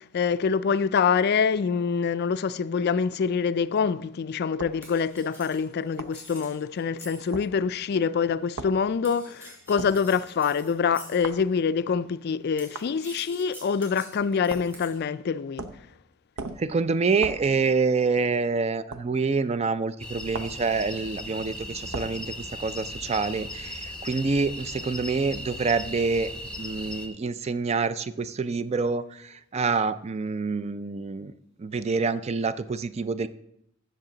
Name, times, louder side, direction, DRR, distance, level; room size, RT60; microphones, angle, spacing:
voice 1, 0.0-15.6, left 6 dB, 50° left, 0.3 m, -25 dB
sound 1, 4.6-4.8 6.0-6.2 7.3-7.5 8.6-8.8 9.8-10.0 11.2-11.5 12.7-12.9 14.5-14.8 15.6-15.9 16.4-16.7 17.2-17.5 18.9-19.1 20.3-20.6 21.9-22.2, right 3 dB, 85° right, 0.7 m, -37 dB
sound 2, 4.8-7.5 9.0-11.4 12.6-15.0, right 1 dB, 10° right, 4.1 m, -47 dB
voice 2, 16.6-26.3 26.6-31.3 31.6-33.3, right 4 dB, 30° right, 0.4 m, -27 dB
sound 3, 20.0-27.1, left 1 dB, 5° left, 0.9 m, -38 dB
15.0 x 6.5 x 3.9 m
head